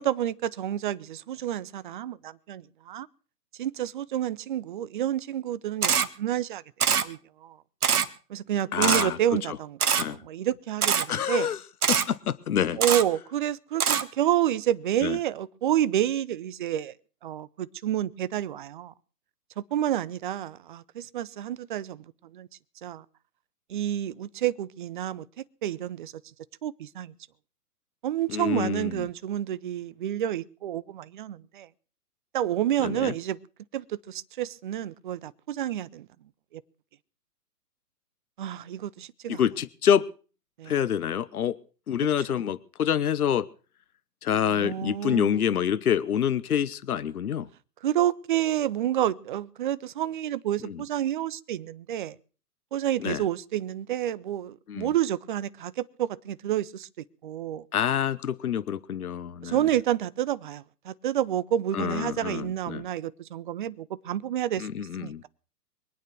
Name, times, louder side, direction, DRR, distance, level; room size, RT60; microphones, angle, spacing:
voice 1, 0.0-3.1 3.6-6.6 6.9-7.6 8.3-11.5 12.8-16.9 17.2-18.9 19.6-22.5 22.8-23.0 23.7-26.1 26.6-27.1 28.0-31.7 32.3-33.4 33.7-36.1 36.5-36.6 38.4-39.4 40.6-40.8 44.5-45.5 47.8-52.2 52.7-56.9 57.2-57.7 59.4-65.3, right 11 dB, 30° right, 0.7 m, -29 dB
Camera, 5.8-6.1 6.8-7.0 7.8-8.1 8.8-9.0 9.8-10.0 10.8-11.0 11.8-12.0 12.8-13.0 13.8-14.0, right 7 dB, 65° right, 1.6 m, -23 dB
voice 2, 8.7-9.2 10.0-10.2 11.1-11.6 11.9-12.8 15.0-15.2 28.3-29.0 32.8-33.1 39.3-40.0 40.7-41.6 41.9-43.5 44.2-47.5 50.6-50.8 53.0-53.2 54.7-54.9 57.7-59.6 61.7-62.8 64.6-65.2, left 9 dB, 65° left, 1.1 m, -27 dB
23.5 x 9.2 x 6.1 m
figure-of-eight pair, 130°, 47 cm